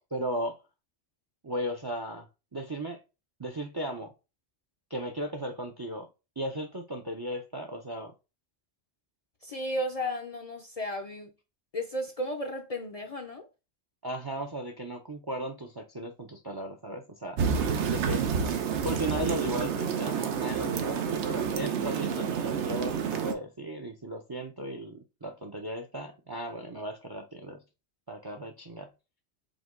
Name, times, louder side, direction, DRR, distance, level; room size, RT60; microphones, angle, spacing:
voice 1, 0.1-0.6 1.4-2.3 2.5-3.0 3.4-4.1 4.9-6.1 6.4-8.1 14.0-17.4 17.9-18.6 18.8-27.6 28.1-28.9, right 1 dB, 35° right, 0.4 m, -36 dB
voice 2, 9.4-11.3 11.7-13.5 17.8-18.1, equal, 45° left, 0.5 m, -34 dB
sound 1, 17.4-23.3, right 6 dB, 90° right, 1.0 m, -29 dB
5.0 x 2.2 x 3.6 m
omnidirectional pair, 1.1 m